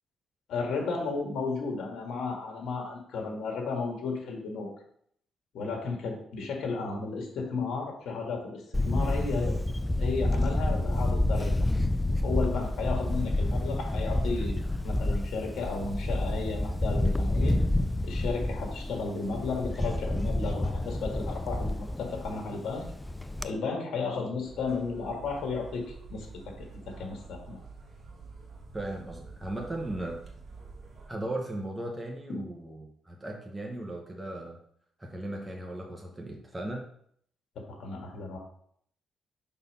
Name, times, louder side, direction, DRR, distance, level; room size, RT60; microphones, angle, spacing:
voice 1, 0.5-4.7 5.5-9.6 10.0-11.5 12.2-14.5 14.8-17.6 18.0-22.9 23.4-27.6 32.3-32.4 37.7-38.4, left 4 dB, 75° left, 1 dB, 1.8 m, -33 dB
Camera, 8.7-23.5, left 1 dB, 10° left, 0.4 m, -29 dB
sound 1, 24.5-31.1, right 4 dB, 40° right, 1.5 m, -47 dB
voice 2, 28.7-30.2 31.1-34.6 35.0-36.9, right 1 dB, 10° right, 0 dB, 1.1 m, -37 dB
5.4 x 4.1 x 5.5 m, 0.66 s
cardioid pair, 90°, 0 cm